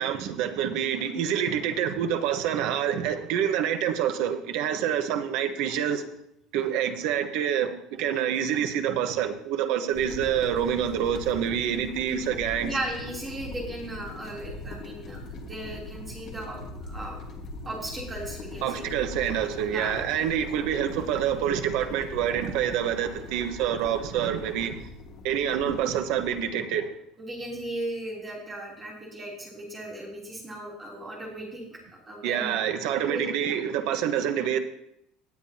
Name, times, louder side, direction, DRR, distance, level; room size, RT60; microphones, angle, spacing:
voice 1, 0.0-6.0 6.5-12.8 18.6-24.9 25.2-26.9 32.2-34.6, right 9 dB, 60° right, 8 dB, 1.1 m, -27 dB
sound 1, 9.9-26.4, left 2 dB, 35° left, 1.6 m, -41 dB
voice 2, 12.6-17.2 17.6-18.8 19.7-20.0 27.2-32.6 33.1-33.3, right 1 dB, 15° right, -3 dB, 3.1 m, -36 dB
18.0 x 9.2 x 2.8 m, 0.75 s
cardioid pair, 175°, 0 cm